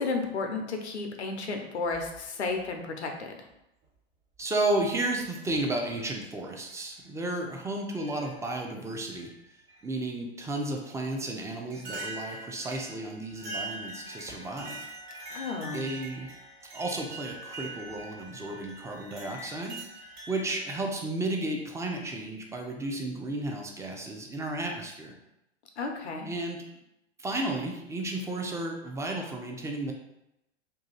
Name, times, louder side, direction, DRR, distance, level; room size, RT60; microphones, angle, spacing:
voice 1, 0.0-3.3 15.3-15.9 25.8-26.3, left 4 dB, 85° left, 4 dB, 0.7 m, -33 dB
sound 1, 1.8-2.7 3.8-3.9 5.0-5.3 5.9-6.0 6.7-6.8 7.9-8.7 9.1-9.9 11.0-11.1 11.7-20.8, right 2 dB, 40° right, 1.3 m, -43 dB
voice 2, 4.4-9.3 9.8-14.9 15.7-16.3 16.7-19.8 20.3-25.2 26.2-26.6 27.2-29.9, right 2 dB, 10° right, 2 dB, 0.5 m, -33 dB
2.8 x 2.7 x 3.9 m, 0.87 s
hypercardioid pair, 100°, 33 cm